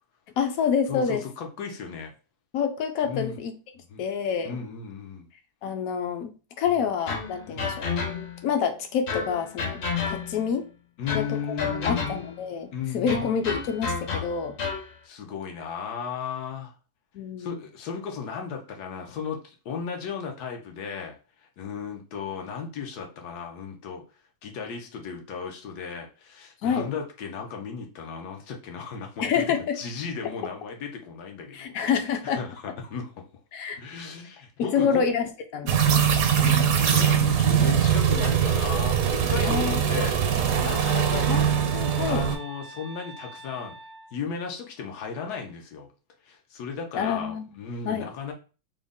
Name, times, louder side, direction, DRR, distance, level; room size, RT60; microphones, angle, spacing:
voice 1, 0.4-1.2 2.5-3.5 4.0-4.6 5.6-7.9 8.4-9.8 10.1-10.7 11.1-14.6 17.1-17.6 26.6-26.9 29.2-29.8 30.2-30.3 31.5-32.4 33.5-33.8 34.6-36.1 39.4-39.8 41.3-41.4 41.7-42.3 46.9-47.4 47.8-48.1, left 7 dB, 70° left, 7 dB, 1.0 m, -27 dB
voice 2, 0.9-2.1 3.0-3.4 3.9-4.0 4.4-5.3 6.7-6.8 7.5-7.8 11.0-12.2 12.7-13.3 15.0-16.7 17.4-21.2 21.6-24.0 24.4-29.4 29.7-31.8 32.2-32.5 32.8-33.1 33.8-35.0 36.0-41.3 42.0-43.8 44.1-45.9 46.2-48.3, left 6 dB, 90° left, 3 dB, 1.3 m, -35 dB
sound 1, 7.1-8.5 9.1-10.5 11.1-12.4 13.1-14.9, left 5 dB, 55° left, 0.8 m, -31 dB
sound 2, 35.7-42.4, right 8 dB, 70° right, 1.0 m, -22 dB
sound 3, 40.5-44.2, right 3 dB, 90° right, 0.4 m, -42 dB
3.8 x 2.1 x 3.5 m, 0.34 s
omnidirectional pair, 1.6 m